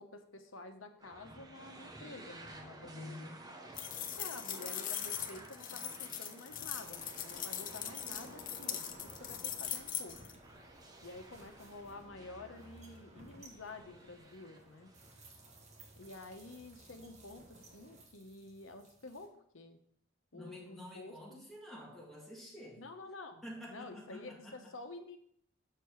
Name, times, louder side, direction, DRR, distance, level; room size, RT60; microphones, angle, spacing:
voice 1, 0.0-3.3 4.2-10.2 11.0-14.9 16.0-19.8 20.3-21.1 22.8-25.2, left 2 dB, 80° left, 7 dB, 1.0 m, -50 dB
sound 1, 1.0-15.9, right 2 dB, 20° right, 0.9 m, -54 dB
voice 2, 2.8-3.5 20.3-22.9 23.4-24.7, left 1 dB, ahead, -4 dB, 2.2 m, -49 dB
sound 2, 3.8-10.3, left 10 dB, 45° left, 0.7 m, -40 dB
sound 3, 6.7-19.3, right 1 dB, 35° right, 1.4 m, -57 dB
6.8 x 6.7 x 4.7 m, 0.66 s
head